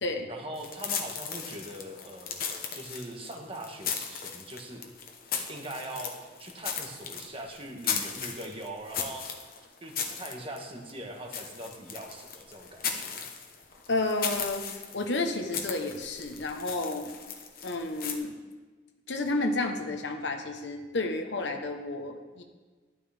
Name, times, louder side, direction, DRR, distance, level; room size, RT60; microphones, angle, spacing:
voice 1, 0.3-2.4 2.7-4.8 5.5-9.4 9.8-13.2, right 1 dB, 30° right, 2 dB, 1.4 m, -41 dB
sound 1, 0.5-18.2, left 6 dB, 55° left, 1.1 m, -37 dB
voice 2, 13.9-14.6 14.9-17.1 17.6-18.3 19.1-22.4, left 2 dB, 80° left, 4 dB, 1.1 m, -31 dB
12.5 x 11.5 x 3.6 m, 1.4 s
head